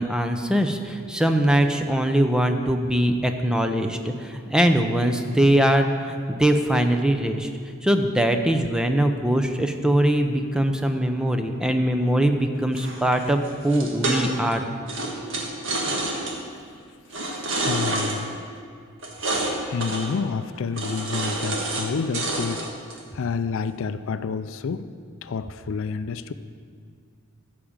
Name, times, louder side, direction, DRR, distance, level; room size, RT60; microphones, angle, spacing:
voice 1, 0.0-7.5 7.8-14.7, right 1 dB, 5° right, 6 dB, 0.5 m, -22 dB
sound 1, 12.8-14.5 14.9-16.3 17.1-18.2 19.0-19.5 19.8-20.1 20.7-21.9 22.1-23.0, right 2 dB, 60° right, 1.7 m, -28 dB
voice 2, 17.6-18.4 19.7-24.9 25.2-26.3, left 5 dB, 65° left, 12 dB, 0.4 m, -29 dB
14.0 x 4.9 x 7.2 m, 2.2 s
head